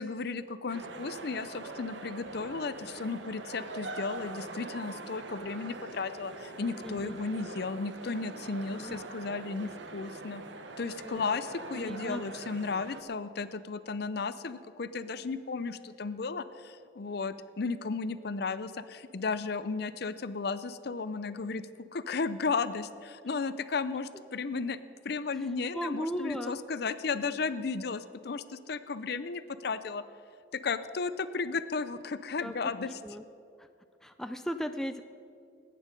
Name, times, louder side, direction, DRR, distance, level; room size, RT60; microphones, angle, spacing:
voice 1, 0.0-10.4 10.8-21.6 21.9-24.8 25.0-30.0 30.5-32.9, left 4 dB, 55° left, 13 dB, 0.5 m, -34 dB
sound 1, 0.7-13.0, right 3 dB, 70° right, 0.9 m, -43 dB
voice 2, 6.8-7.2 8.5-9.0 11.0-11.4 11.7-12.3 25.3-26.6 32.4-33.2 33.6-33.7 34.0-35.0, equal, ahead, 7 dB, 0.4 m, -37 dB
19.5 x 9.3 x 5.3 m, 2.4 s
head